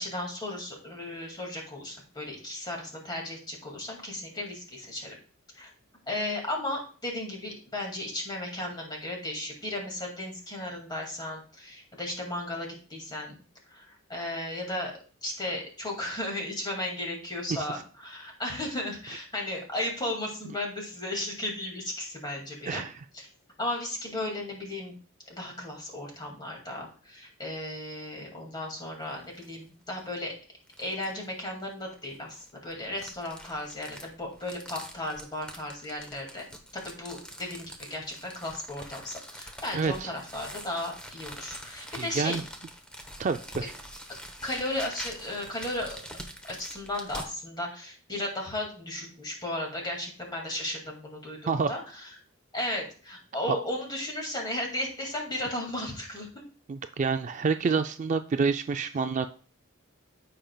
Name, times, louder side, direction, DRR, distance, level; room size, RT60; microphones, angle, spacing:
voice 1, 0.0-5.2 5.5-5.7 6.1-13.4 13.7-14.9 15.2-22.8 23.1-23.3 23.6-24.9 25.3-30.3 30.8-36.5 36.7-42.4 44.4-46.0 46.5-52.1 52.5-56.3, left 1 dB, 20° left, -1 dB, 2.1 m, -35 dB
sound 1, 29.0-29.5 30.0-30.1 30.7-31.2 32.1-47.3, equal, 5° left, 0.8 m, -45 dB
voice 2, 39.7-40.1 41.9-42.4 43.2-43.7 51.5-51.7 56.7-59.3, right 5 dB, 35° right, 8 dB, 0.3 m, -28 dB
14.5 x 5.1 x 2.3 m, 0.40 s
head